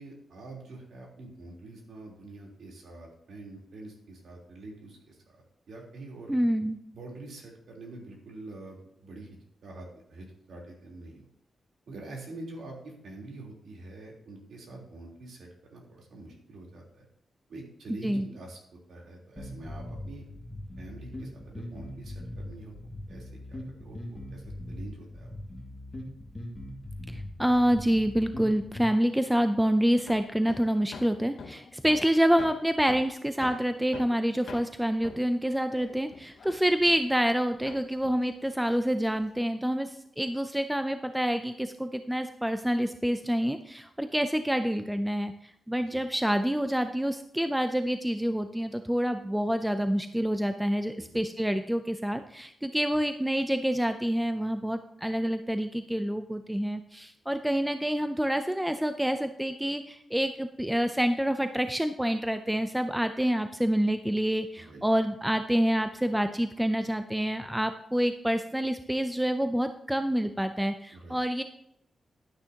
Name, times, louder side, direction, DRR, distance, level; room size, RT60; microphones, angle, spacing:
voice 1, 0.0-5.1 5.7-6.5 6.9-9.3 9.6-11.3 11.9-17.1 17.5-18.6 18.9-20.2 20.8-22.7 23.1-25.3 45.9-46.0 51.0-51.2 64.7-64.8 70.9-71.2, right 2 dB, 75° right, -1 dB, 3.6 m, -45 dB
voice 2, 6.3-6.8 18.0-18.3 27.1-45.3 45.7-71.4, equal, 5° right, 8 dB, 0.5 m, -27 dB
sound 1, 19.4-28.9, left 1 dB, 15° left, 2.1 m, -41 dB
Hammer, 30.1-37.4 37.7-39.4, left 5 dB, 60° left, 0.8 m, -46 dB
11.5 x 9.9 x 2.9 m, 0.75 s
wide cardioid pair, 145°, 0 cm